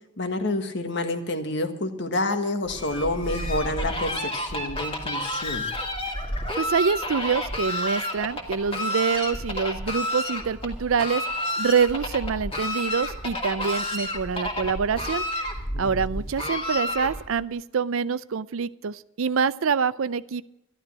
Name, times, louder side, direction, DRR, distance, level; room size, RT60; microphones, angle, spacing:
voice 1, 0.2-5.7 15.7-16.2, left 2 dB, 55° left, 6 dB, 1.6 m, -29 dB
Fowl, 2.7-17.4, left 1 dB, 25° left, 2.2 m, -30 dB
voice 2, 6.6-11.2 11.6-15.2 15.8-20.4, right 6 dB, 75° right, 17 dB, 0.5 m, -26 dB
13.0 x 12.0 x 6.1 m, 0.90 s
head